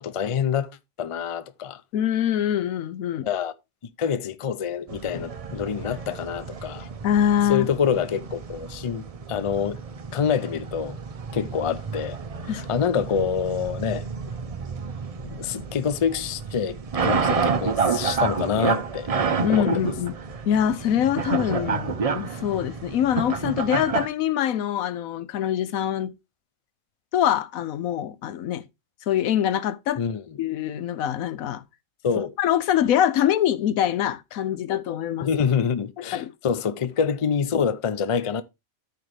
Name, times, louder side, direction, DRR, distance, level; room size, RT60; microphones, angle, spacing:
voice 1, 0.0-1.8 3.2-3.5 4.0-6.9 7.5-9.8 10.1-11.0 11.3-12.2 12.5-14.1 15.2-19.1 19.5-19.7 30.0-30.2 32.0-32.3 35.2-38.4, left 7 dB, 60° left, 0.3 m, -26 dB
voice 2, 1.9-3.3 7.0-7.7 12.5-12.6 19.4-20.1 20.5-26.1 27.1-28.6 29.1-30.0 30.4-31.6 32.4-35.3 36.1-36.3, left 10 dB, 90° left, 1.1 m, -24 dB
sound 1, 4.9-24.1, right 5 dB, 40° right, 0.5 m, -29 dB
13.5 x 4.6 x 3.2 m
omnidirectional pair, 1.4 m